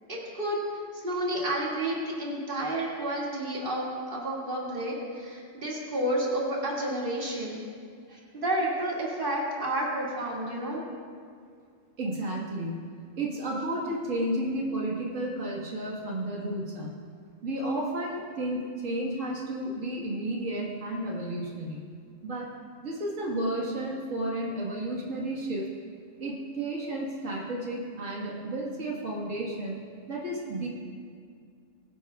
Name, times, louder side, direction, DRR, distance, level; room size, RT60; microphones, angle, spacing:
voice 1, 0.1-0.6 0.9-7.6 8.1-10.8, right 1 dB, 45° right, -5 dB, 2.5 m, -30 dB
voice 2, 12.0-12.7 13.2-16.9 17.4-21.8 22.2-22.5 22.8-25.7 26.2-29.8 30.1-30.7, right 1 dB, 90° right, -3 dB, 2.0 m, -32 dB
21.5 x 10.5 x 2.4 m, 2.1 s
omnidirectional pair, 1.3 m